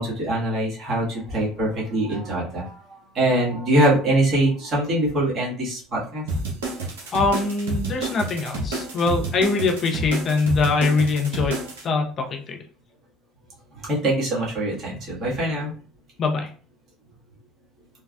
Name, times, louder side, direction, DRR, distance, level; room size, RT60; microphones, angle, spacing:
voice 1, 0.0-2.8 3.1-6.2 13.8-15.7, right 1 dB, 45° right, -5 dB, 1.4 m, -23 dB
sound 1, 6.3-11.8, right 1 dB, 80° right, 0.7 m, -29 dB
voice 2, 7.1-11.6 11.8-12.6 16.2-16.5, left 4 dB, 45° left, 3 dB, 0.7 m, -23 dB
3.2 x 2.3 x 2.3 m, 0.41 s
hypercardioid pair, 70°, 0 cm